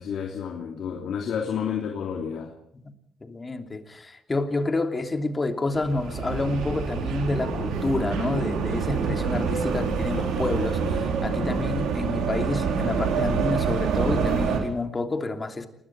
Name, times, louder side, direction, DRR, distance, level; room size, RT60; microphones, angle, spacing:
voice 1, 0.0-2.5, left 7 dB, 70° left, 1 dB, 3.1 m, -30 dB
voice 2, 3.2-15.7, left 2 dB, 25° left, 5 dB, 3.0 m, -28 dB
sound 1, 5.7-14.6, right 5 dB, 90° right, 4.3 m, -26 dB
28.5 x 21.0 x 4.8 m, 0.75 s
cardioid pair, 90°, 0 cm